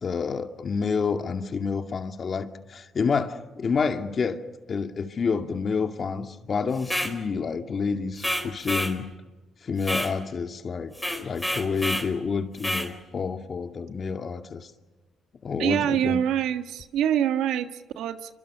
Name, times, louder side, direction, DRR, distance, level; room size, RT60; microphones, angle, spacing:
voice 1, 0.0-4.4 4.7-9.1 9.6-10.9 11.2-14.7 15.4-16.2, left 5 dB, 45° left, 6 dB, 2.3 m, -28 dB
sound 1, 6.8-7.2 8.2-9.0 9.8-10.1 10.9-12.1 12.6-12.9, equal, ahead, 4.3 m, -29 dB
voice 2, 15.6-18.3, right 10 dB, 85° right, 8 dB, 1.5 m, -25 dB
27.5 x 25.0 x 6.8 m, 1.2 s
cardioid pair, 90°, 0 cm